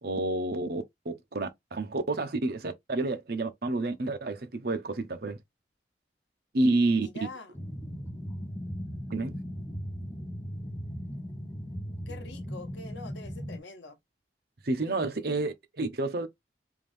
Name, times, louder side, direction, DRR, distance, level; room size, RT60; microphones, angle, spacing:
voice 1, 0.0-5.4 6.5-7.1 9.1-9.4 14.6-16.3, right 2 dB, 60° right, 0.7 m, -29 dB
voice 2, 7.0-7.6 12.1-14.0 14.8-15.1, left 2 dB, 90° left, 0.9 m, -45 dB
sound 1, 7.5-13.6, equal, 15° left, 0.7 m, -38 dB
3.6 x 2.6 x 3.2 m
head